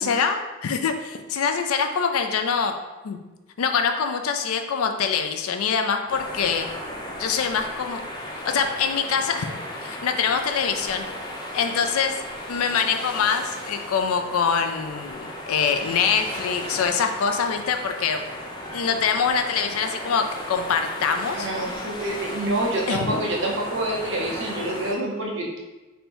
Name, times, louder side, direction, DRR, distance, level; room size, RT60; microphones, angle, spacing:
voice 1, 0.0-2.7 3.0-3.2 3.6-6.7 7.2-8.0 8.4-9.5 9.8-11.1 11.5-12.1 12.5-18.2 18.7-21.5 22.9-23.1, left 6 dB, 85° left, 6 dB, 0.4 m, -24 dB
sound 1, 6.1-24.9, left 1 dB, 20° left, 0.4 m, -35 dB
voice 2, 21.3-25.6, right 1 dB, 55° right, -2 dB, 0.8 m, -27 dB
3.4 x 2.7 x 4.3 m, 1.1 s
head